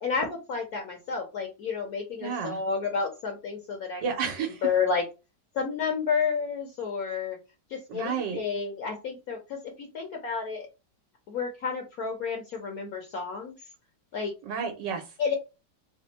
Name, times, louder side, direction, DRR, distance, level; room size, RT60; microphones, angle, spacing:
voice 1, 0.0-4.0 4.6-5.1 5.5-7.4 7.7-10.7 11.3-13.5 14.1-14.3 15.2-15.4, left 5 dB, 60° left, 2 dB, 1.1 m, -30 dB
voice 2, 2.2-2.6 4.0-4.6 7.9-8.4 14.5-15.0, right 6 dB, 80° right, 4 dB, 1.4 m, -31 dB
3.4 x 2.0 x 3.9 m, 0.28 s
omnidirectional pair, 1.9 m